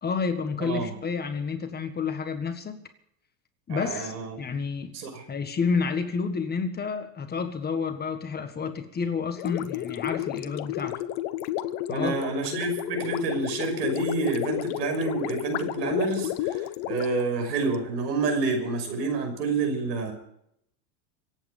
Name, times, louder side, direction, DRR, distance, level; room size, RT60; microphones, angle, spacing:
voice 1, 0.0-2.8 3.7-4.9 5.3-11.0 11.9-12.1, left 5 dB, 20° left, 8 dB, 1.6 m, -30 dB
voice 2, 3.7-4.4 4.9-5.2 11.9-20.1, right 3 dB, 80° right, 5 dB, 5.9 m, -28 dB
Gurgling, 9.4-17.8, left 14 dB, 50° left, 1.1 m, -32 dB
25.0 x 9.0 x 5.5 m, 0.74 s
supercardioid pair, 125°, 49 cm